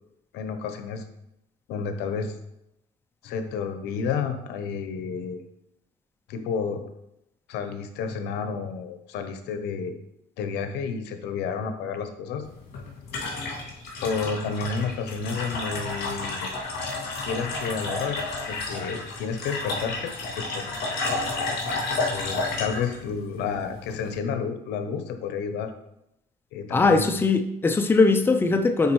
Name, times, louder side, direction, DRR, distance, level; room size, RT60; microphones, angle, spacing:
voice 1, 0.3-1.0 1.7-2.3 3.2-5.4 6.3-6.8 7.5-9.9 10.4-12.4 14.0-16.5 17.2-18.2 18.5-20.7 22.1-25.7 26.5-27.1, left 5 dB, 85° left, 0.8 m, -31 dB
sound 1, 12.4-24.2, left 3 dB, 65° left, 2.5 m, -31 dB
voice 2, 26.7-28.9, left 3 dB, 15° left, 0.5 m, -20 dB
9.5 x 4.0 x 3.1 m
cardioid pair, 110°, 17 cm